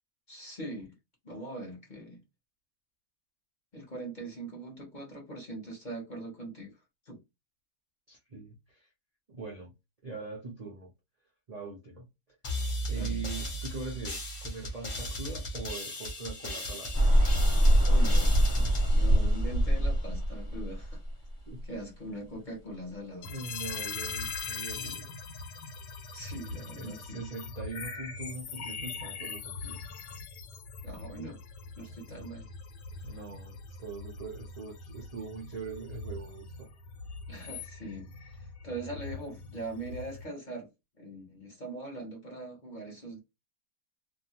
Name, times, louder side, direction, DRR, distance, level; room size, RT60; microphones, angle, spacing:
voice 1, 0.3-0.9 1.2-2.2 3.7-6.7 7.1-7.2 12.9-13.2 17.9-21.0 21.6-23.3 26.1-27.2 30.8-31.4 31.8-32.5 37.3-40.7 41.0-43.2, right 2 dB, 35° left, 0.8 m, -41 dB
voice 2, 8.1-8.9 9.3-9.7 10.0-10.9 11.5-12.0 12.9-17.0 21.5-21.7 22.3-22.4 23.0-25.2 26.5-29.8 33.0-36.7, right 3 dB, 70° right, 0.3 m, -42 dB
sound 1, 12.4-19.9, equal, 60° left, 0.3 m, -37 dB
sound 2, 16.9-21.3, equal, 15° right, 0.6 m, -23 dB
sound 3, 23.2-40.3, left 4 dB, 85° left, 1.3 m, -41 dB
2.7 x 2.3 x 2.8 m
omnidirectional pair, 1.8 m